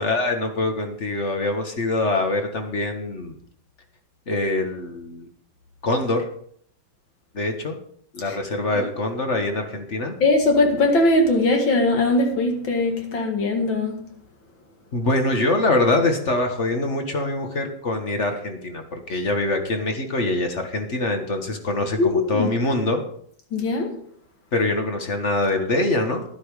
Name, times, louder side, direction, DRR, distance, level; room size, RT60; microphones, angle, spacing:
voice 1, 0.0-3.3 4.3-5.3 5.8-6.2 7.3-7.8 8.1-10.1 14.9-23.0 24.5-26.2, left 2 dB, 35° left, 1.6 m, -24 dB
voice 2, 10.2-14.0 22.0-22.5 23.5-23.9, left 2 dB, 70° left, 2.6 m, -20 dB
12.0 x 11.5 x 4.9 m
omnidirectional pair, 2.2 m